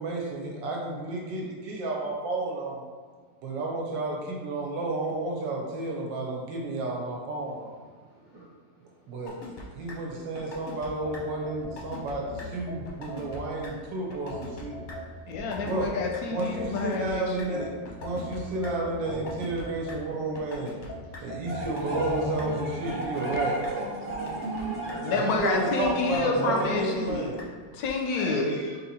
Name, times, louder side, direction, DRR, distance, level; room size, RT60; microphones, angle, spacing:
voice 1, 0.0-2.8 3.4-7.8 9.1-9.3 9.7-14.7 15.6-15.9 16.3-17.7 18.0-20.7 21.2-23.9 25.1-27.4, right 2 dB, 80° right, -1 dB, 1.5 m, -31 dB
sound 1, 9.3-9.6 9.9-10.0 10.4-10.9 11.1-11.2 11.6-12.1 12.4-12.5 12.8-13.4 13.6-13.7 14.1-14.6 14.9-15.0 15.3-15.9 16.1-16.2 16.6-17.4 17.9-18.7 19.1-19.9 20.4-20.9 21.1-21.2 21.6-22.1 22.4-22.5 22.8-23.4 23.6-23.7 24.1-24.6 24.9-25.0 25.3-25.9 26.1-26.2 26.6-27.1 27.4-27.5 27.8-27.9, left 4 dB, 45° left, 0.6 m, -42 dB
sound 2, 11.0-13.8 14.3-17.1 17.6-20.4 20.9-22.5, left 1 dB, 90° left, 1.3 m, -41 dB
voice 2, 15.3-17.6 24.9-27.3 27.7-28.5, left 4 dB, 70° left, 2 dB, 0.9 m, -29 dB
voice 3, 18.2-19.1 19.8-19.9 20.5-22.1 22.7-25.3 28.1-28.8, equal, 60° right, -8 dB, 0.6 m, -45 dB
sound 3, 21.4-26.7, right 2 dB, 10° right, 0.7 m, -34 dB
3.7 x 2.8 x 4.1 m, 1.5 s
omnidirectional pair, 2.0 m